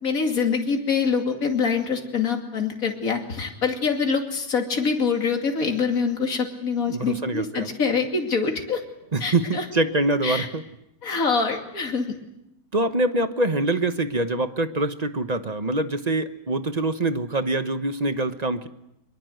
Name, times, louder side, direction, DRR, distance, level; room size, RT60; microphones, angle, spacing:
voice 1, 0.0-8.8 9.2-9.6 10.2-10.5 11.0-12.1, left 5 dB, 55° left, 3 dB, 3.0 m, -25 dB
voice 2, 6.9-7.7 9.1-10.6 12.7-18.7, right 2 dB, 30° right, 10 dB, 1.0 m, -24 dB
24.5 x 23.0 x 8.0 m, 0.85 s
omnidirectional pair, 1.8 m